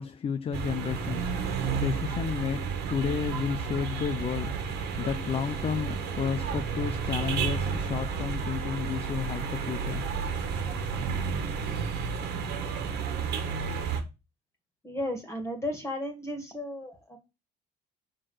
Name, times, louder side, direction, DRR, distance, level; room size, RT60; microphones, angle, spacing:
voice 1, 0.0-10.1, left 7 dB, 35° left, 0.5 m, -32 dB
sound 1, 0.5-14.0, right 6 dB, 80° right, 1.7 m, -31 dB
voice 2, 14.8-17.2, left 1 dB, 15° left, 1.9 m, -34 dB
5.9 x 4.6 x 6.3 m
cardioid pair, 110°, 17 cm